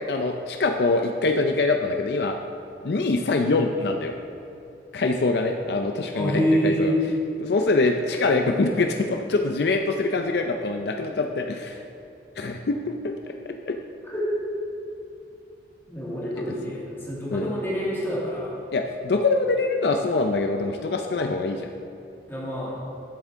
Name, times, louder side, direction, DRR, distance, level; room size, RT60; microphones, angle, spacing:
voice 1, 0.1-2.4 2.8-4.1 4.9-6.9 7.4-11.8 12.4-12.8 13.0-13.1 13.7-13.8 17.3-17.5 18.7-21.7, left 3 dB, 65° left, 4 dB, 0.5 m, -24 dB
voice 2, 6.1-7.0 14.1-14.4 15.9-18.5 22.3-22.8, equal, 10° left, -7 dB, 2.1 m, -26 dB
11.0 x 8.0 x 3.6 m, 2.7 s
head